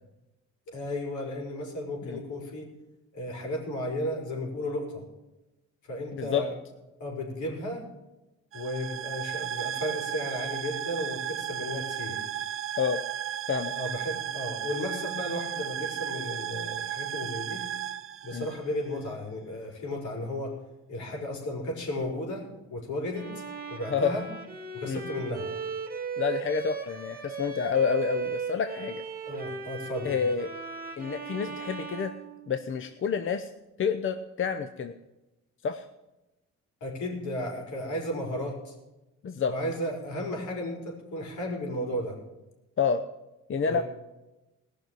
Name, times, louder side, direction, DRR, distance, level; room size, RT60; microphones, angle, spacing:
voice 1, 0.7-2.7 3.1-5.0 5.9-6.5 7.0-7.9 8.5-12.2 13.7-17.7 18.2-20.6 20.9-23.3 23.7-24.3 24.7-25.5 29.2-30.2 36.8-38.7 39.5-42.2 43.7-43.8, left 1 dB, 75° left, -1 dB, 5.0 m, -34 dB
voice 2, 6.1-6.4 12.8-13.0 13.5-13.7 18.3-18.5 23.9-24.1 24.9-25.0 26.2-29.0 30.0-30.5 31.0-32.1 32.5-33.5 33.8-34.9 35.6-35.8 39.2-39.5 42.8-43.0 43.5-43.8, left 6 dB, 40° left, 8 dB, 0.9 m, -28 dB
sound 1, 8.5-19.0, right 11 dB, 45° right, 0.6 m, -34 dB
Bowed string instrument, 23.1-32.9, right 6 dB, 30° right, 2.5 m, -37 dB
17.5 x 6.6 x 9.2 m, 1.0 s
cardioid pair, 90°, 30 cm